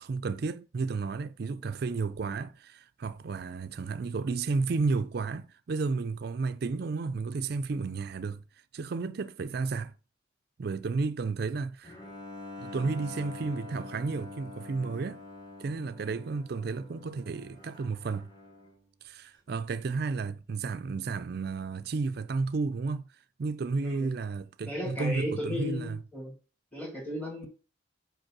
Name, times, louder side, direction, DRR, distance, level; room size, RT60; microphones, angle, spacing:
voice 1, 0.0-8.4 8.7-9.9 10.6-11.9 12.6-15.2 15.6-18.3 19.0-23.0 23.4-26.0, right 4 dB, 55° right, 0.4 m, -32 dB
Bowed string instrument, 11.8-18.9, left 2 dB, 25° left, 2.2 m, -45 dB
voice 2, 23.8-24.2 24.6-26.3 26.7-27.5, left 1 dB, 5° left, 1.7 m, -35 dB
5.3 x 4.5 x 5.9 m
head